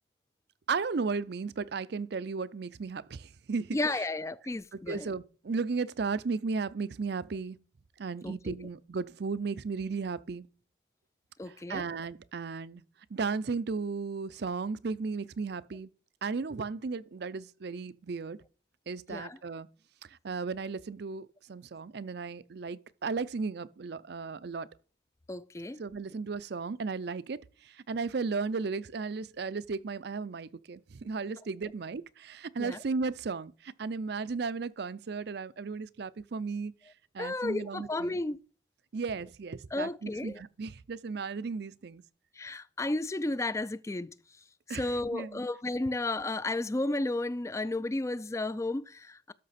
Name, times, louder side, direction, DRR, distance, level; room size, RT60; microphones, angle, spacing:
voice 1, 0.7-4.1 4.7-7.6 8.0-10.5 11.5-12.8 13.1-15.9 16.2-18.4 18.9-19.7 20.1-24.7 25.8-36.7 37.1-38.2 38.9-42.0 44.7-45.4, right 4 dB, 55° right, 0.5 m, -35 dB
voice 2, 3.7-5.1 8.2-8.6 11.4-11.8 19.1-19.4 25.3-25.8 32.6-32.8 37.2-38.4 39.7-40.4 42.4-44.1 44.7-49.3, left 2 dB, 15° left, 0.3 m, -33 dB
12.5 x 5.9 x 4.2 m
head